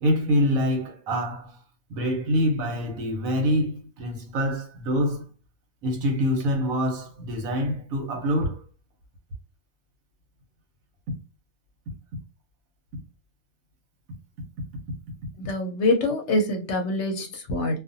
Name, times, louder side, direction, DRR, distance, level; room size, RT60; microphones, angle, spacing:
voice 1, 0.0-1.6 1.9-5.3 5.8-8.6, equal, 75° right, 1.2 m, -25 dB
voice 2, 15.4-17.8, left 2 dB, 60° left, 0.9 m, -25 dB
2.5 x 2.4 x 2.6 m
omnidirectional pair, 1.5 m